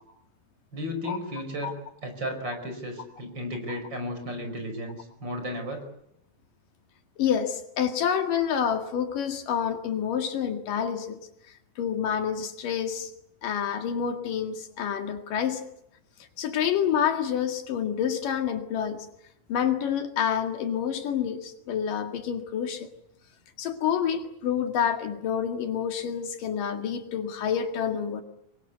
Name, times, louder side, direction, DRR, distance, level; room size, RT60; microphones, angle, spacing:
voice 1, 0.7-1.8 2.0-5.8, equal, 30° right, 6 dB, 5.6 m, -34 dB
voice 2, 7.2-11.2 11.8-13.1 13.4-15.7 16.4-19.1 19.5-22.9 23.6-28.2, left 8 dB, 75° left, 6 dB, 3.6 m, -28 dB
26.0 x 22.5 x 8.2 m, 0.77 s
omnidirectional pair, 3.8 m